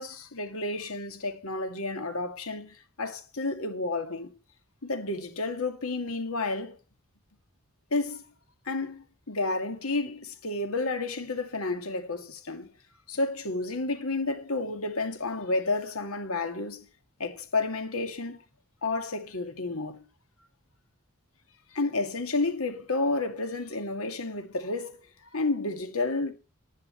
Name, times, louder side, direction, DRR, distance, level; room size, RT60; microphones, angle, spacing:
voice 1, 0.0-4.4 4.8-6.8 7.9-8.2 8.7-12.7 13.1-16.9 17.2-18.4 18.8-20.0 21.7-25.0 25.3-26.3, left 3 dB, 80° left, 2.1 m, -31 dB
11.0 x 10.5 x 4.4 m
head